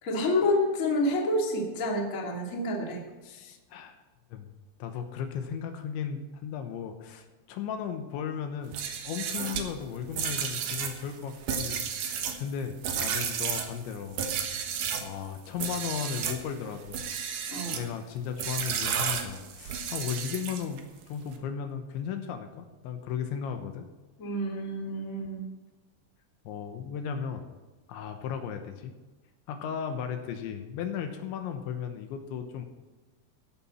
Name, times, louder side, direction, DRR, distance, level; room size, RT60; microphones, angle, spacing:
voice 1, 0.0-3.0 17.5-17.8 24.2-25.4, left 1 dB, 30° left, -1 dB, 1.6 m, -28 dB
voice 2, 3.2-4.0 4.3-4.5 4.8-14.3 14.7-17.1 17.7-23.9 26.4-27.5 27.9-28.9 29.5-32.7, left 7 dB, 75° left, 6 dB, 3.2 m, -36 dB
sound 1, 8.6-15.1 15.6-16.4 16.9-17.9 18.4-20.8, right 7 dB, 70° right, 2.0 m, -32 dB
15.5 x 11.5 x 4.4 m, 1.2 s
omnidirectional pair, 5.6 m